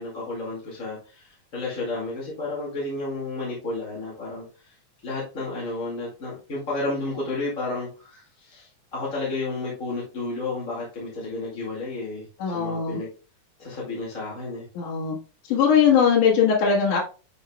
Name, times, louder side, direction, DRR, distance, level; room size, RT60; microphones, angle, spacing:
voice 1, 0.0-4.7 5.0-13.1 13.6-14.7, left 3 dB, 25° left, -6 dB, 2.3 m, -32 dB
voice 2, 12.4-13.0 14.7-15.2 15.4-17.0, left 7 dB, 80° left, -4 dB, 3.1 m, -20 dB
10.0 x 5.1 x 2.3 m, 0.35 s
omnidirectional pair, 3.5 m